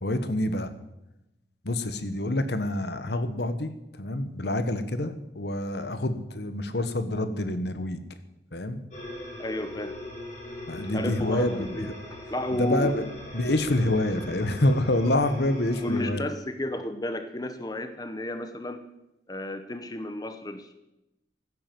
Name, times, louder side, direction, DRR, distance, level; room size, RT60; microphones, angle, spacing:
voice 1, 0.0-0.7 1.6-3.7 4.0-8.0 8.5-8.8 10.7-11.9 12.5-16.2, left 1 dB, 65° left, 10 dB, 1.3 m, -27 dB
sound 1, 8.9-16.0, left 1 dB, 40° left, 6.4 m, -40 dB
voice 2, 9.4-10.0 10.9-12.9 15.0-15.2 15.6-18.8 19.3-20.7, left 1 dB, 20° left, 9 dB, 0.8 m, -32 dB
15.5 x 9.9 x 7.8 m, 0.93 s
head